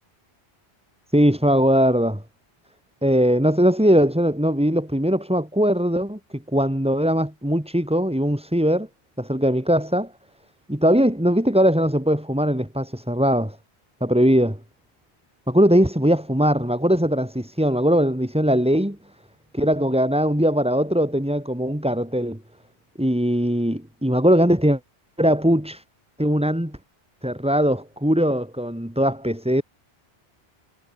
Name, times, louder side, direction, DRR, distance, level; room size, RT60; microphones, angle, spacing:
voice 1, 1.1-2.2 3.0-8.9 9.2-10.1 10.7-13.6 14.0-14.5 15.5-19.0 19.5-22.4 23.0-24.8 25.2-25.8 26.2-26.8 27.2-29.6, equal, 5° right, 2.7 m, -20 dB
omnidirectional pair, 1.1 m